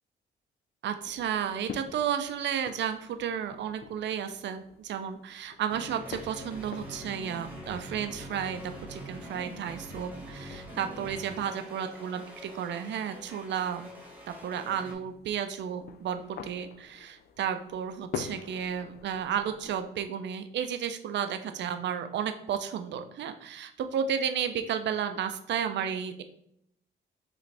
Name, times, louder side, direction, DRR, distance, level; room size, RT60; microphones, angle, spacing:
voice 1, 0.8-13.9 14.3-26.2, right 8 dB, 65° right, 8 dB, 0.5 m, -33 dB
sound 1, 1.0-19.8, left 7 dB, 55° left, 0.4 m, -48 dB
sound 2, 5.7-14.9, equal, 10° right, 1.2 m, -44 dB
4.9 x 3.2 x 3.3 m, 0.74 s
cardioid pair, 90°, 20 cm